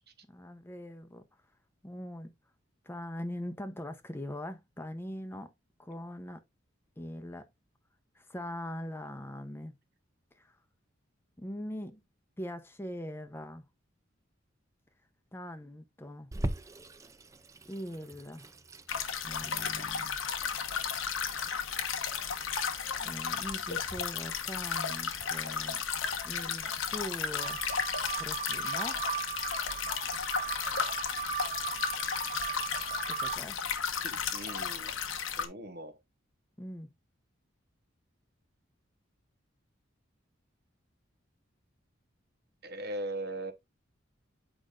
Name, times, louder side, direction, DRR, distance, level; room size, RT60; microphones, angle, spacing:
voice 1, 0.3-1.2 1.8-2.3 2.8-5.5 5.8-6.4 7.0-7.5 8.1-9.7 10.4-10.6 11.4-12.0 12.4-13.6 15.3-16.3 17.7-18.5 19.2-20.2 23.0-25.8 26.2-27.6 28.2-29.0 33.1-33.6 36.6-36.9, left 1 dB, 10° left, 0.7 m, -41 dB
Water tap faucet / Sink (filling or washing), 16.3-25.3, right 1 dB, 15° right, 0.4 m, -43 dB
sound 1, 18.9-35.5, left 7 dB, 90° left, 1.1 m, -34 dB
sound 2, 27.4-33.3, right 8 dB, 30° right, 1.0 m, -37 dB
voice 2, 34.0-34.9 35.4-36.0 42.6-43.5, right 1 dB, 55° right, 1.0 m, -39 dB
8.3 x 5.0 x 2.5 m
head